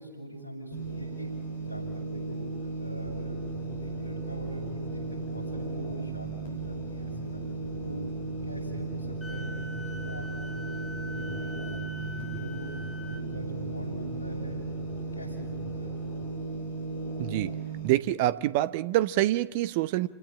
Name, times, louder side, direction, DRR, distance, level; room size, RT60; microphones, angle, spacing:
voice 1, 0.0-7.4 7.8-8.1 8.4-11.5 12.0-12.7 13.0-14.6 15.1-15.9, right 1 dB, 85° right, 7.6 m, -43 dB
sound 1, 0.7-17.9, right 3 dB, 60° left, 6.7 m, -36 dB
sound 2, 3.0-16.3, left 4 dB, 30° left, 4.2 m, -45 dB
Wind instrument woodwind instrument, 9.2-13.3, left 2 dB, 10° left, 2.3 m, -43 dB
voice 2, 17.2-17.5 17.8-20.1, right 15 dB, 50° right, 0.8 m, -26 dB
29.5 x 17.5 x 8.9 m
figure-of-eight pair, 90°, 0 cm